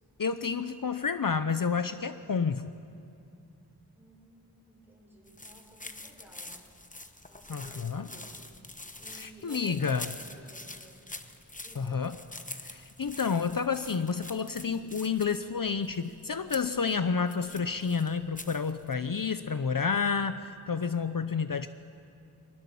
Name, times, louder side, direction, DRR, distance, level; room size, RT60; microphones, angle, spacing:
voice 1, 0.2-2.7 7.5-8.1 9.1-10.1 11.8-12.2 12.6-21.7, left 5 dB, 60° left, 11 dB, 0.6 m, -30 dB
voice 2, 3.9-6.6 7.3-8.4 9.0-11.0 11.6-12.1, right 1 dB, 5° right, -3 dB, 6.6 m, -54 dB
sound 1, 5.3-18.9, left 2 dB, 20° left, 1.0 m, -46 dB
24.0 x 19.5 x 7.0 m, 2.6 s
wide cardioid pair, 40°, 38 cm